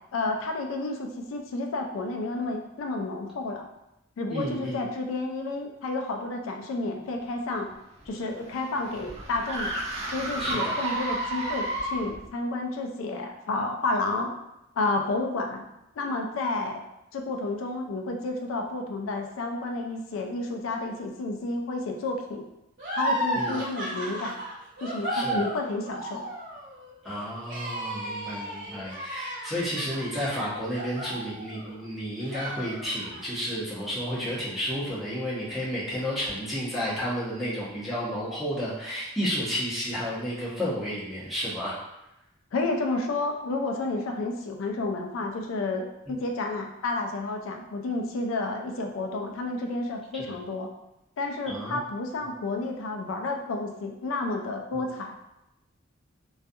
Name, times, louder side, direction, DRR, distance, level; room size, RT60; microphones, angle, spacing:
voice 1, 0.1-3.7 4.2-7.7 8.1-9.7 10.1-14.3 14.8-15.6 16.0-16.8 17.1-22.4 23.0-24.3 24.8-26.2 42.5-50.7 51.2-55.1, left 2 dB, 90° left, 3 dB, 0.4 m, -31 dB
voice 2, 4.3-4.8 10.4-10.7 23.3-23.6 25.1-25.4 27.0-41.8 50.1-50.2 51.5-51.8 54.7-54.8, equal, ahead, -9 dB, 0.8 m, -31 dB
sound 1, 7.7-12.3, right 1 dB, 30° right, 0.4 m, -32 dB
sound 2, 22.8-31.8 32.2-33.2, right 1 dB, 60° right, 1.1 m, -34 dB
2.3 x 2.3 x 2.6 m, 0.89 s
head